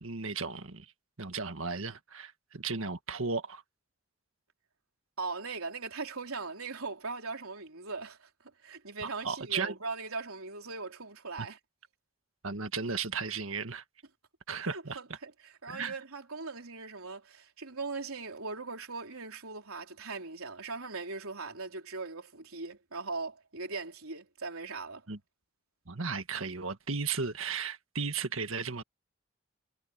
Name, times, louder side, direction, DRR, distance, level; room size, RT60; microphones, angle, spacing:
voice 1, 0.0-0.9 1.2-3.6 9.0-9.8 11.4-11.5 12.4-13.8 14.5-15.0 15.7-16.0 25.1-25.2 25.9-28.8, right 5 dB, 75° right, 1.7 m, -35 dB
voice 2, 5.2-8.3 8.6-11.6 14.5-25.0, right 4 dB, 90° right, 4.0 m, -40 dB
head